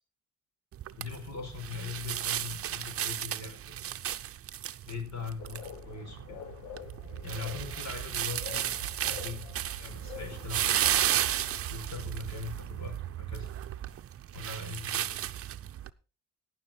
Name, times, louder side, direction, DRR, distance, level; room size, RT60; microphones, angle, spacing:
sound 1, 0.7-15.9, right 11 dB, 50° right, 0.6 m, -34 dB
voice 1, 1.0-3.8 4.9-6.4 7.2-9.5 9.8-11.1 11.7-13.5 14.3-15.2, left 4 dB, 60° left, 4 dB, 4.7 m, -41 dB
sound 2, 5.4-12.4, left 9 dB, 85° left, 0.9 m, -47 dB
17.5 x 6.2 x 4.4 m, 0.34 s
cardioid pair, 90°, 30 cm